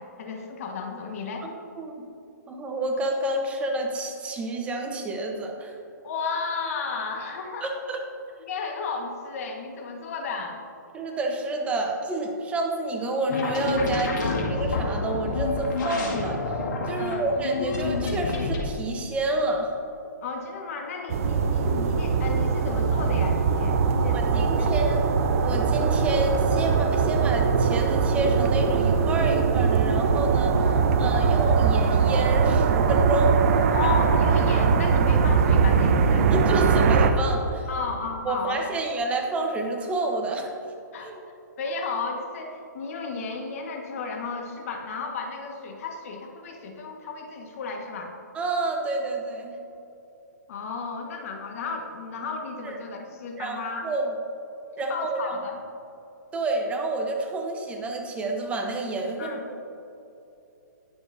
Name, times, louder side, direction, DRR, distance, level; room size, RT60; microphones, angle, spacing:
voice 1, 0.0-1.5 6.0-7.7 8.4-10.6 14.2-14.4 16.9-17.3 20.2-24.9 30.6-31.0 33.7-36.3 37.7-38.6 40.9-41.1 41.6-48.1 50.5-53.8 54.8-55.6 59.2-59.4, left 4 dB, 50° left, 2 dB, 1.6 m, -33 dB
voice 2, 1.4-2.1 2.5-5.7 7.6-8.0 10.9-16.6 16.9-19.7 24.1-25.1 25.4-33.4 33.8-34.0 36.3-37.7 38.2-40.5 41.0-41.1 48.3-49.6 52.6-52.7 53.4-54.2 54.8-55.4 56.3-59.7, right 2 dB, 10° right, 2 dB, 1.0 m, -29 dB
sound 1, 13.3-18.6, left 3 dB, 75° left, 2.2 m, -28 dB
sound 2, 21.1-37.1, right 5 dB, 50° right, 0.8 m, -21 dB
19.5 x 7.0 x 2.7 m, 2.8 s
hypercardioid pair, 145°, 10 cm